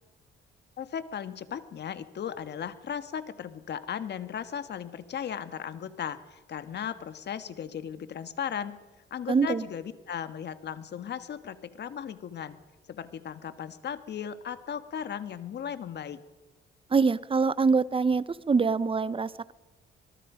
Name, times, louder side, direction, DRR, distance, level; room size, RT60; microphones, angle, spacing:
voice 1, 0.8-8.8 9.1-12.6 12.9-16.2, left 8 dB, 60° left, 11 dB, 1.6 m, -36 dB
voice 2, 9.3-9.6 16.9-19.5, right 4 dB, 25° right, 18 dB, 0.8 m, -24 dB
24.5 x 21.5 x 5.1 m, 1.1 s
cardioid pair, 90°, 20 cm